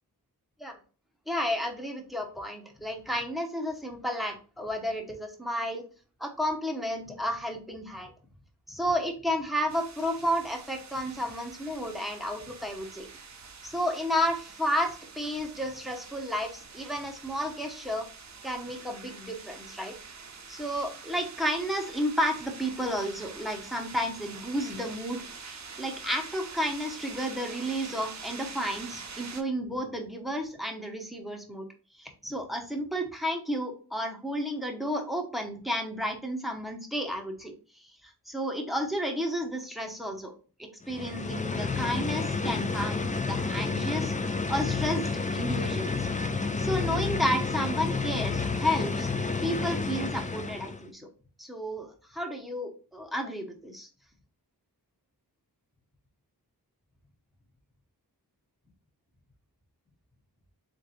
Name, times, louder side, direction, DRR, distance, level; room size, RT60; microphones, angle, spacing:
voice 1, 1.3-5.8 6.2-8.1 8.7-13.1 13.6-18.1 18.4-19.9 20.5-31.6 32.0-40.3 40.6-44.1 44.5-46.1 46.6-49.1 49.4-51.1 51.4-53.9, equal, ahead, 2 dB, 0.9 m, -32 dB
sound 1, 9.7-29.4, right 5 dB, 45° right, 0.6 m, -45 dB
Noise of the fountain motor, 40.8-50.9, left 4 dB, 20° left, 0.3 m, -30 dB
3.5 x 2.6 x 4.2 m, 0.38 s
wide cardioid pair, 60°, 39 cm